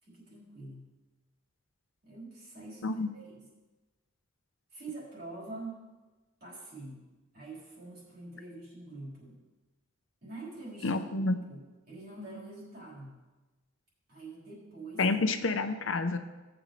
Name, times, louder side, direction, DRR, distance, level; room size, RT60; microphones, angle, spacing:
voice 1, 0.0-0.9 2.0-3.5 4.7-5.9 6.4-7.1 7.3-9.4 10.2-13.2 14.1-15.1, right 2 dB, 45° right, -7 dB, 4.1 m, -45 dB
voice 2, 10.8-11.3 15.0-16.2, left 3 dB, 70° left, 8 dB, 0.7 m, -28 dB
17.5 x 8.0 x 3.2 m, 1.2 s
head